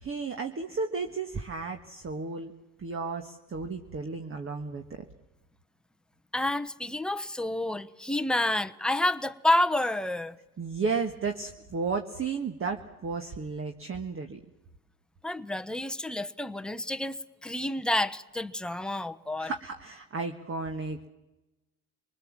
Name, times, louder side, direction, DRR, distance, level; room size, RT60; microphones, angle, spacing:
voice 1, 0.0-2.5 2.8-4.8 10.6-14.4 19.4-21.1, right 4 dB, 30° right, 1.7 m, -33 dB
voice 2, 6.3-10.4 15.2-19.5, left 1 dB, ahead, 0.9 m, -29 dB
26.5 x 20.0 x 7.5 m
supercardioid pair, 95°, 44 cm